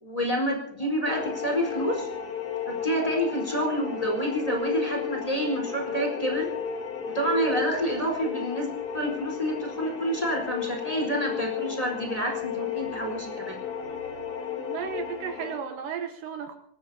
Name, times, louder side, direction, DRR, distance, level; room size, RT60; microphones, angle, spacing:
voice 1, 0.0-2.1 2.7-6.5 7.0-13.6, equal, 10° left, 0 dB, 4.3 m, -28 dB
sound 1, 1.1-15.6, left 7 dB, 40° left, 1.4 m, -33 dB
voice 2, 14.6-16.6, right 7 dB, 70° right, 6 dB, 2.6 m, -34 dB
25.5 x 20.0 x 2.8 m, 0.76 s
omnidirectional pair, 4.3 m